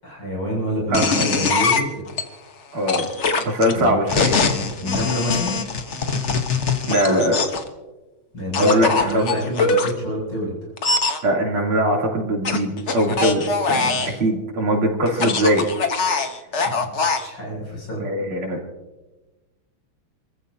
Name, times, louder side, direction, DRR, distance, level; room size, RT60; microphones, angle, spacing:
voice 1, 0.0-2.0 3.7-4.0 4.8-5.6 8.3-10.7 16.6-16.8 17.2-18.1, equal, 75° left, -3 dB, 8.5 m, -27 dB
sound 1, 0.9-2.2 2.9-7.7 8.5-9.9 10.8-11.2 12.5-14.2 15.1-17.3, left 4 dB, 40° left, 1.2 m, -22 dB
voice 2, 2.7-3.1 3.5-4.4 6.9-7.4 8.6-9.2 11.2-15.7 18.0-18.6, equal, 80° right, -1 dB, 3.9 m, -21 dB
29.0 x 15.0 x 2.8 m, 1.1 s
omnidirectional pair, 2.3 m